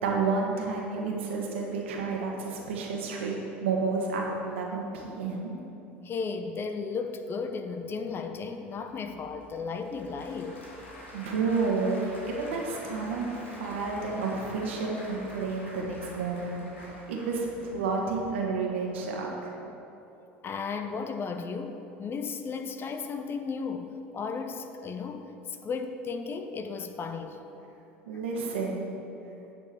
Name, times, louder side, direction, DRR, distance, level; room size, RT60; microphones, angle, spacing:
voice 1, 0.0-5.5 11.1-12.0 12.3-19.5 28.0-28.8, right 4 dB, 80° right, -1 dB, 1.6 m, -30 dB
voice 2, 6.0-10.6 20.4-27.4, left 5 dB, 35° left, 7 dB, 0.8 m, -35 dB
Applause / Crowd, 8.8-18.3, equal, 90° left, 1.9 m, -47 dB
10.0 x 4.5 x 7.6 m, 3.0 s
hypercardioid pair, 75°, 6 cm